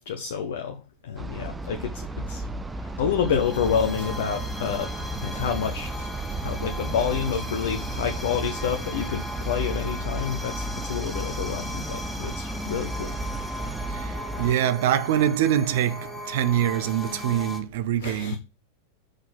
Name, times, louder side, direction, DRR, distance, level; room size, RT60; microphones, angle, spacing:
voice 1, 0.1-0.8 1.0-2.5 2.8-4.9 5.2-5.9 6.4-13.2 18.0-18.4, left 7 dB, 60° left, 0.8 m, -28 dB
sound 1, 1.2-14.5, right 2 dB, 10° right, 0.5 m, -33 dB
sound 2, 2.9-17.6, left 1 dB, 5° left, 1.4 m, -38 dB
sound 3, 3.0-3.4 3.7-6.7 7.0-8.1 8.3-8.6, left 2 dB, 80° left, 1.7 m, -43 dB
voice 2, 14.4-16.0 16.3-18.4, right 11 dB, 55° right, 0.6 m, -23 dB
6.4 x 4.1 x 6.0 m
figure-of-eight pair, 90°, 0 cm